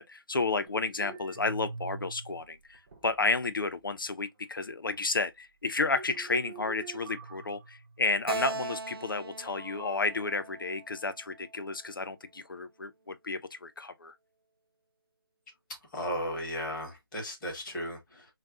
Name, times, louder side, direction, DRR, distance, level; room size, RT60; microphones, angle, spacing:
voice 1, 0.0-14.2, left 3 dB, 60° left, 0.6 m, -32 dB
sound 1, 0.7-2.4 2.7-3.7 4.2-4.3 4.9-5.0 5.8-8.3 9.4-10.0, right 3 dB, 30° right, 2.4 m, -45 dB
Keyboard (musical), 8.3-11.7, right 3 dB, 70° right, 0.4 m, -39 dB
voice 2, 15.9-18.3, equal, ahead, 0.5 m, -35 dB
6.2 x 2.3 x 2.3 m
figure-of-eight pair, 170°, 13 cm